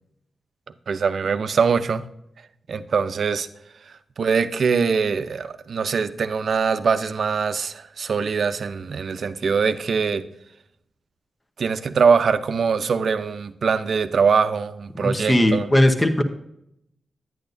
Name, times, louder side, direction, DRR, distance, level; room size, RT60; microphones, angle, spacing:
voice 1, 0.9-2.0 2.7-3.5 3.8-10.2 11.6-15.7, right 5 dB, 70° right, 11 dB, 0.6 m, -22 dB
voice 2, 14.9-16.2, left 1 dB, 20° left, 6 dB, 1.0 m, -18 dB
10.5 x 8.9 x 2.6 m, 0.77 s
cardioid pair, 85°, 0 cm